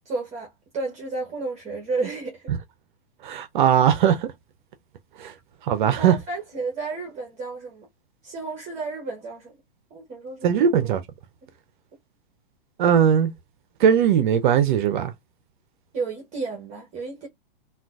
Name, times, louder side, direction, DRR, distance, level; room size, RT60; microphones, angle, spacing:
voice 1, 0.0-2.5 5.9-7.8 8.2-9.5 9.9-11.0 15.9-17.3, right 3 dB, 25° right, 1.0 m, -32 dB
voice 2, 3.2-4.3 5.2-5.3 5.6-6.2 10.4-11.0 12.8-13.3 13.8-15.1, right 8 dB, 55° right, 0.5 m, -19 dB
3.7 x 2.3 x 2.3 m
hypercardioid pair, 125°, 29 cm